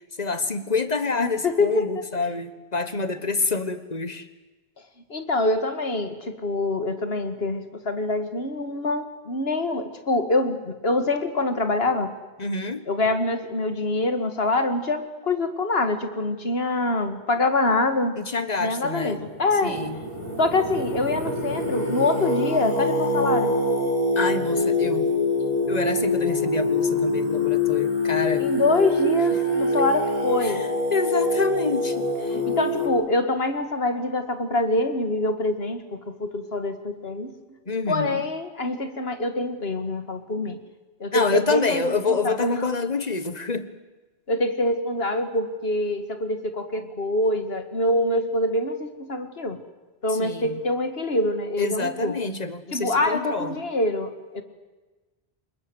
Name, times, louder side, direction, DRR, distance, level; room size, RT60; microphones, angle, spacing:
voice 1, 0.1-4.3 12.4-12.8 18.2-19.2 19.6-20.0 24.1-25.1 25.7-28.5 30.4-32.4 37.7-38.2 41.1-43.7 50.1-50.6 51.6-53.6, left 4 dB, 40° left, 12 dB, 1.5 m, -27 dB
voice 2, 1.2-1.9 5.1-12.1 12.9-18.2 18.6-19.8 20.4-23.5 28.4-30.7 32.3-37.3 37.9-40.6 41.0-41.8 42.1-42.5 44.3-49.6 50.0-52.2 52.7-54.4, left 2 dB, 75° left, 8 dB, 2.2 m, -25 dB
Singing, 19.0-32.9, left 2 dB, 40° right, 5.3 m, -25 dB
25.5 x 21.5 x 8.0 m, 1.2 s
omnidirectional pair, 1.0 m